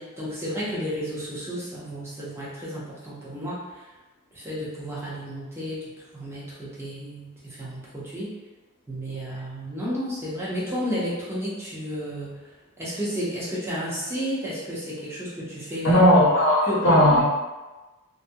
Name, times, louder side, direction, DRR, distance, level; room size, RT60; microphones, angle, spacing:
voice 1, 0.0-3.9 4.3-8.3 8.9-12.4 12.8-16.0 16.6-17.2, equal, 10° right, -8 dB, 0.7 m, -32 dB
voice 2, 15.8-17.2, equal, 60° left, -9 dB, 0.7 m, -17 dB
2.5 x 2.1 x 2.7 m, 1.2 s
head